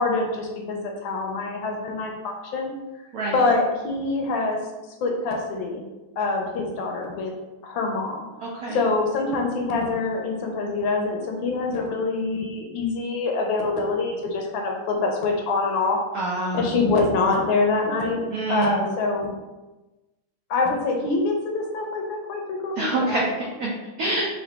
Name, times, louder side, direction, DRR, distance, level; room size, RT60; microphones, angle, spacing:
voice 1, 0.0-2.7 3.3-4.6 5.0-5.8 6.2-7.3 7.6-8.2 8.7-16.0 16.5-18.2 18.5-19.3 20.5-23.3, left 3 dB, 75° left, 2 dB, 1.2 m, -25 dB
voice 2, 16.1-16.7 18.3-18.8 22.8-23.7 24.0-24.3, right 2 dB, 80° right, -4 dB, 0.8 m, -26 dB
3.8 x 2.5 x 3.3 m, 1.1 s
omnidirectional pair, 2.3 m